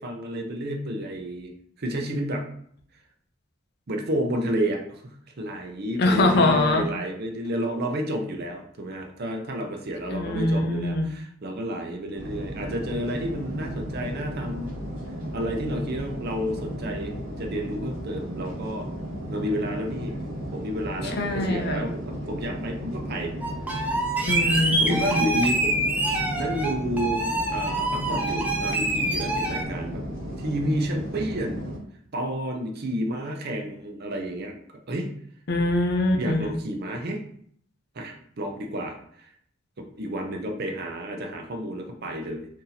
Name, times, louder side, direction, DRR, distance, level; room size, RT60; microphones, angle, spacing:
voice 1, 0.0-1.5 1.8-2.4 3.9-14.7 15.3-18.9 19.3-20.1 20.5-23.3 24.8-26.0 26.4-30.0 30.4-31.7 32.1-34.5 34.9-35.1 36.2-37.2 37.9-39.3 39.8-42.5, equal, 50° right, 2 dB, 0.6 m, -30 dB
voice 2, 6.0-6.9 10.1-11.1 21.2-21.9 24.3-25.2 35.5-36.5, left 2 dB, 50° left, 4 dB, 0.5 m, -23 dB
sound 1, 12.2-31.8, equal, 80° right, 1.1 m, -35 dB
sound 2, 23.4-29.6, right 2 dB, 10° right, 0.5 m, -26 dB
2.7 x 2.7 x 3.9 m, 0.63 s
head